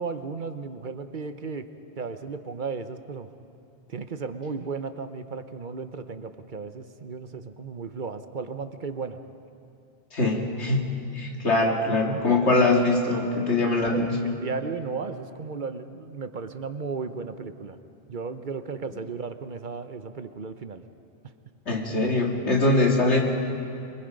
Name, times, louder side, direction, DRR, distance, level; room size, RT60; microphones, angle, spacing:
voice 1, 0.0-1.7 2.0-3.3 3.9-9.2 13.8-17.8 18.1-20.8, right 4 dB, 50° right, 9 dB, 0.9 m, -35 dB
voice 2, 10.1-10.8 11.1-14.1 21.7-23.2, left 2 dB, 80° left, 0 dB, 2.7 m, -22 dB
25.5 x 23.0 x 5.3 m, 2.6 s
omnidirectional pair, 1.1 m